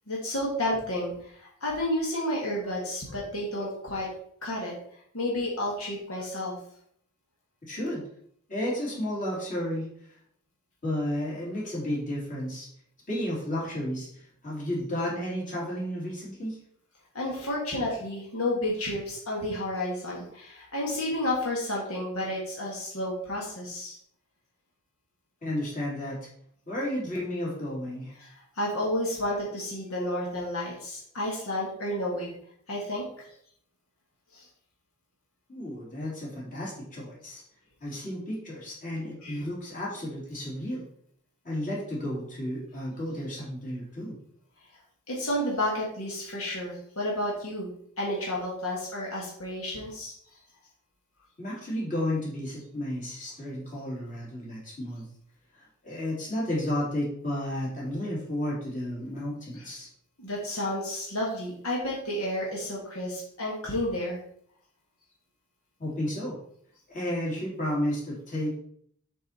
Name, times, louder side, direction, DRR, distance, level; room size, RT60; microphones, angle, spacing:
voice 1, 0.1-4.1 4.4-4.7 5.1-6.6 17.1-24.0 28.2-28.3 28.6-32.3 32.7-33.3 34.3-34.4 39.2-39.4 45.1-47.7 48.0-50.1 59.6-59.7 60.2-64.2, left 1 dB, 80° left, -4 dB, 2.0 m, -31 dB
voice 2, 7.7-8.0 8.5-9.9 10.8-12.7 13.1-16.6 25.4-26.3 26.7-28.1 35.5-37.4 37.8-40.9 41.4-44.2 51.4-55.1 55.5-59.9 65.8-66.4 66.9-68.6, left 1 dB, 40° left, -5 dB, 3.2 m, -32 dB
7.6 x 4.7 x 4.3 m, 0.65 s
head